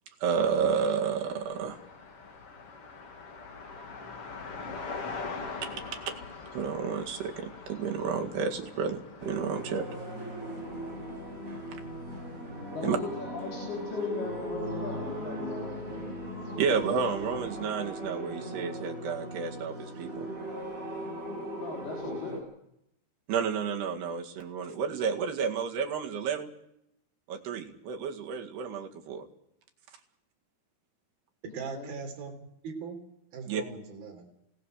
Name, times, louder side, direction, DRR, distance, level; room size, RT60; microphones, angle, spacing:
voice 1, 0.2-1.8 5.6-5.7 6.1-6.2 6.5-9.9 12.8-13.0 16.6-20.3 23.3-26.5 27.3-29.3 33.5-33.6, right 6 dB, 80° right, 2 dB, 4.1 m, -31 dB
sound 1, 0.9-17.8, left 4 dB, 45° left, 2.7 m, -45 dB
sound 2, 9.2-22.4, equal, 20° right, 7.8 m, -38 dB
voice 2, 12.7-16.0 21.5-22.5 31.7-31.9, left 3 dB, 75° left, -1 dB, 5.5 m, -38 dB
voice 3, 31.4-32.3 32.6-33.0 33.3-34.3, right 5 dB, 65° right, 2 dB, 5.4 m, -39 dB
28.5 x 18.0 x 6.6 m, 0.78 s
omnidirectional pair, 4.6 m